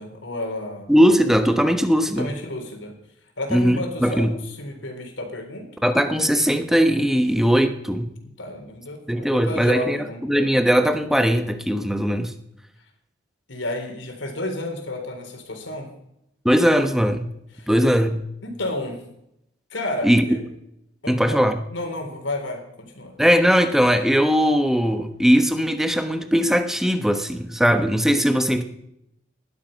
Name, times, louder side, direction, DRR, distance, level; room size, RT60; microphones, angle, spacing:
voice 1, 0.0-0.9 2.2-2.9 3.4-5.7 8.4-10.2 13.5-15.9 17.5-17.7 18.4-19.0 19.7-20.4 21.0-21.4 21.7-23.1, left 1 dB, 80° left, 5 dB, 4.0 m, -31 dB
voice 2, 0.9-2.3 3.5-4.3 5.8-8.1 9.1-10.0 10.3-12.3 16.4-17.3 17.7-18.2 20.0-20.3 21.1-21.6 23.2-28.6, equal, ahead, 7 dB, 1.1 m, -19 dB
19.0 x 12.5 x 5.4 m, 0.80 s
head